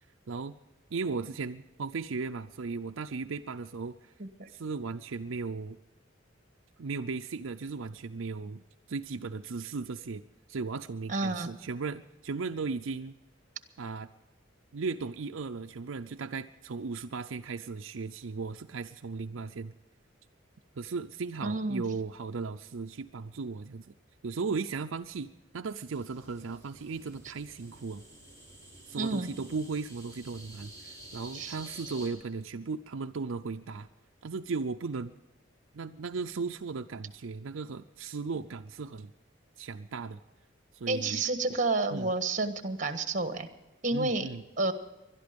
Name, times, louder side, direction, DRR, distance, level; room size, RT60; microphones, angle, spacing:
voice 1, 0.9-4.1 4.5-5.8 6.8-10.2 10.5-13.2 13.8-14.1 14.7-19.7 20.8-23.9 24.2-28.0 28.9-33.9 34.2-35.1 35.7-39.1 39.6-40.2 40.7-41.2 41.9-42.1 43.9-44.4, right 4 dB, 75° right, 7 dB, 0.5 m, -36 dB
voice 2, 11.1-11.5 21.4-21.8 28.9-29.3 31.3-31.5 40.9-43.5 43.8-44.3 44.6-44.7, right 3 dB, 40° right, 8 dB, 1.5 m, -30 dB
sound 1, 25.9-32.1, right 1 dB, 15° left, 4.4 m, -50 dB
21.5 x 12.0 x 5.2 m, 1.1 s
head